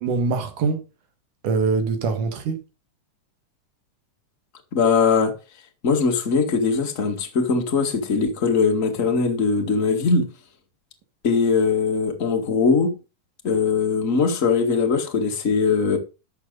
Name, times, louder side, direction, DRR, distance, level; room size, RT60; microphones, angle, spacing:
voice 1, 0.0-0.9 1.4-2.6, right 4 dB, 75° right, 3.1 m, -23 dB
voice 2, 4.7-5.3 5.8-10.3 11.2-12.9 13.4-16.0, left 4 dB, 30° left, 1.9 m, -21 dB
11.5 x 7.8 x 4.0 m
omnidirectional pair, 3.7 m